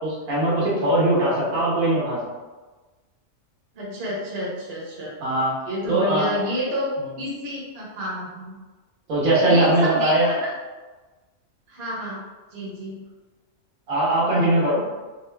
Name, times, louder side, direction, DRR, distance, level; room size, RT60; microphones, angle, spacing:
voice 1, 0.0-2.2 5.2-5.5 5.9-6.3 9.1-10.3 13.9-14.8, right 1 dB, 80° right, -6 dB, 1.5 m, -20 dB
voice 2, 3.7-5.1 5.6-6.9 7.2-8.6 9.4-10.5 11.7-12.2 12.5-13.0 14.3-14.6, equal, 50° right, -5 dB, 1.1 m, -29 dB
3.6 x 2.6 x 3.2 m, 1.2 s
omnidirectional pair, 1.4 m